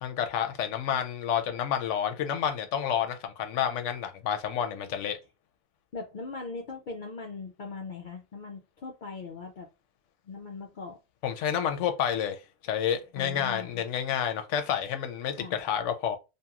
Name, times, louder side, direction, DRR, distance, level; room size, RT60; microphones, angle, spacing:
voice 1, 0.0-5.2 11.2-16.2, left 9 dB, 80° left, 0.9 m, -29 dB
voice 2, 5.9-9.7 10.3-11.0 13.2-13.8 15.3-15.6, left 4 dB, 60° left, 0.5 m, -40 dB
2.8 x 2.6 x 2.3 m
omnidirectional pair, 1.2 m